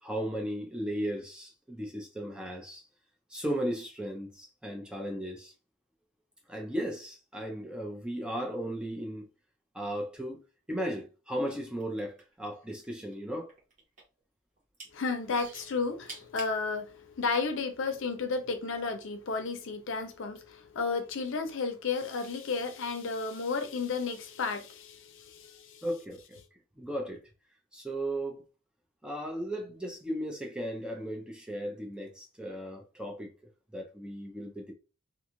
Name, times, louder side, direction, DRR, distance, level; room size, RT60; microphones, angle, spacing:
voice 1, 0.0-2.8 3.3-5.5 6.5-9.3 9.7-10.4 10.7-13.5 25.8-26.4 26.8-27.2 27.7-28.4 29.0-33.3 33.7-34.7, equal, 5° right, 0.4 m, -36 dB
sound 1, 11.7-12.9 13.1-14.2 14.6-14.9 15.3-16.6 17.3-17.4, right 3 dB, 40° right, 1.1 m, -46 dB
voice 2, 14.9-25.8, left 4 dB, 65° left, 0.5 m, -33 dB
2.5 x 2.3 x 2.9 m
head